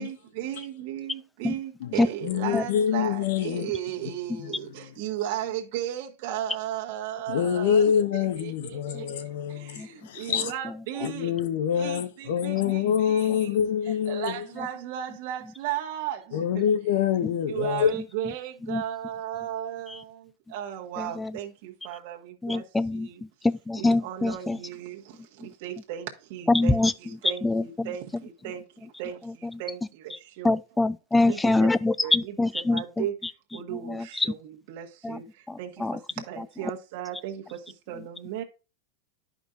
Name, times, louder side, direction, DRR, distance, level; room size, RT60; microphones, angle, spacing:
voice 1, 0.0-11.3 11.7-13.5 14.1-16.7 17.5-23.2 23.8-30.6 31.2-31.7 32.0-33.2 33.5-38.4, right 11 dB, 55° right, 1.2 m, -36 dB
voice 2, 2.2-3.7 4.4-4.5 7.3-10.5 11.0-14.4 16.3-17.9, left 8 dB, 70° left, 1.0 m, -26 dB
voice 3, 21.0-21.3 22.4-23.1 23.4-24.6 26.5-26.9 27.4-27.9 30.4-33.0 33.9-34.3 35.0-35.2 35.5-36.0, left 2 dB, 5° left, 0.3 m, -24 dB
11.0 x 5.2 x 2.5 m
supercardioid pair, 160°, 0 cm